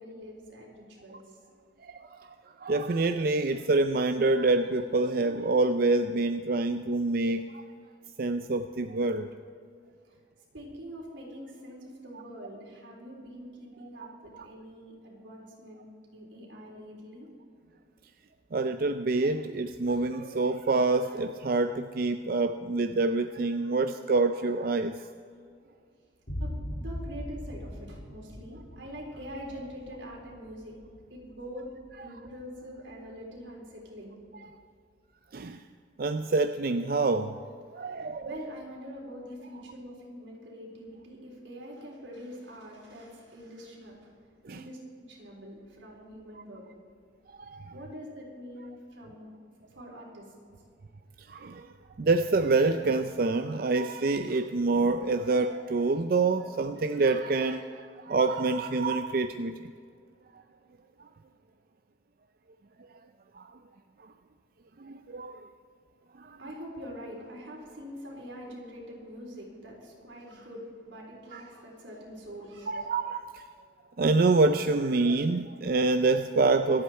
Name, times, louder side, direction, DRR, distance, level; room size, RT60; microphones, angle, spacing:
voice 1, 0.0-1.4 10.0-10.2 10.5-15.8 16.1-17.3 26.4-26.5 26.8-30.8 31.1-31.7 32.0-34.2 37.7-44.1 44.5-44.8 45.1-46.7 47.7-49.3 49.7-50.3 66.4-72.9, equal, 85° right, -2 dB, 3.9 m, -44 dB
voice 2, 1.8-7.6 8.2-9.3 14.0-14.1 14.3-14.5 18.5-25.1 32.0-32.1 35.3-35.6 36.0-37.4 37.7-38.3 44.4-44.6 47.4-47.7 51.2-51.7 52.0-59.7 63.3-63.5 64.8-65.5 66.2-66.4 71.3-71.4 72.7-73.4 74.0-76.8, right 3 dB, 50° right, 8 dB, 0.4 m, -27 dB
sound 1, 26.3-33.7, equal, 60° left, 1.6 m, -41 dB
25.5 x 8.6 x 4.5 m, 2.3 s
head